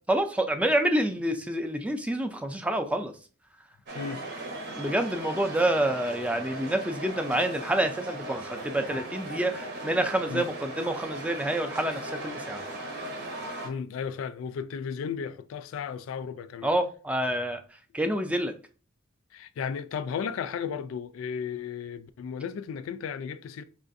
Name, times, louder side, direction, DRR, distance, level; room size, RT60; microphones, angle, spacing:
voice 1, 0.1-3.1 4.8-12.6 16.6-17.6 17.9-18.5, right 1 dB, 5° right, 0.3 m, -27 dB
sound 1, 3.9-13.7, right 2 dB, 60° right, 0.8 m, -38 dB
voice 2, 13.6-16.7 19.3-23.6, left 7 dB, 85° left, 0.3 m, -34 dB
4.6 x 2.4 x 2.5 m
head